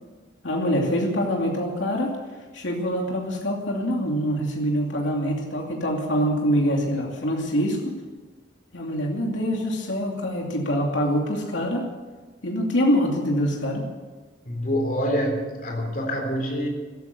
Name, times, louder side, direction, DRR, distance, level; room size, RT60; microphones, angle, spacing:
voice 1, 0.4-2.1 2.5-7.9 8.7-11.8 12.4-13.9, equal, 85° left, 0 dB, 2.7 m, -25 dB
voice 2, 14.5-16.7, equal, 45° left, 2 dB, 3.6 m, -26 dB
15.5 x 13.0 x 6.7 m, 1.3 s
head